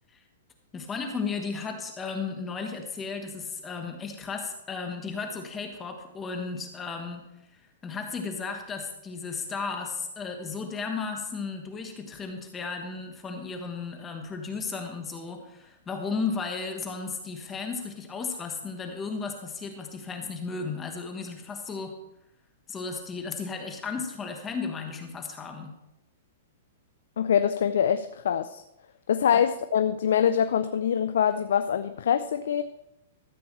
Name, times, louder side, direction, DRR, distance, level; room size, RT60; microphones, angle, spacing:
voice 1, 0.7-22.0 22.7-25.8 29.3-29.4, left 4 dB, 15° left, 4 dB, 1.1 m, -34 dB
voice 2, 27.2-28.6 29.1-32.6, left 8 dB, 80° left, 10 dB, 0.4 m, -24 dB
13.0 x 8.3 x 3.2 m, 0.87 s
hypercardioid pair, 145°, 0 cm